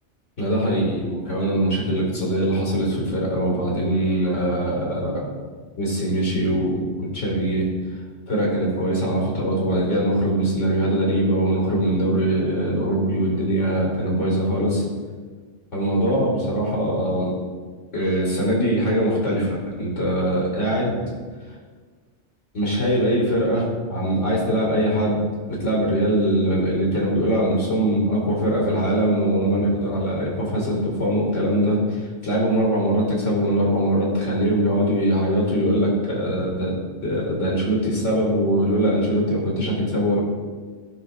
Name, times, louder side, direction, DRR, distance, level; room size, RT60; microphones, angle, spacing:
voice 1, 0.4-5.3 5.8-7.7 8.3-14.8 15.7-17.3 17.9-21.1 22.5-25.2 25.5-40.2, right 1 dB, 80° left, -4 dB, 2.6 m, -22 dB
14.5 x 6.0 x 2.6 m, 1.5 s
omnidirectional pair, 1.2 m